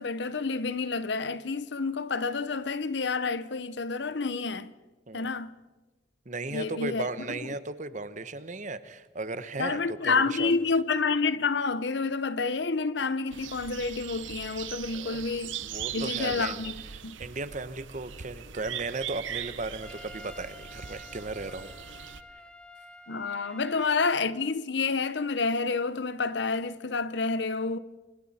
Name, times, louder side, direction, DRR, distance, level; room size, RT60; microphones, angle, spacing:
voice 1, 0.0-4.7 5.1-5.6 6.5-7.1 9.6-15.6 15.9-16.7 17.0-17.2 23.1-27.8, left 4 dB, 65° left, 0.8 m, -29 dB
voice 2, 6.3-10.5 14.9-15.2 15.6-16.6 17.2-21.7 23.4-23.6, right 3 dB, 40° right, 1.0 m, -36 dB
sound 1, 13.3-22.2, right 9 dB, 90° right, 1.0 m, -40 dB
Trumpet, 19.8-24.2, left 1 dB, 5° left, 0.9 m, -49 dB
28.5 x 26.0 x 4.3 m
head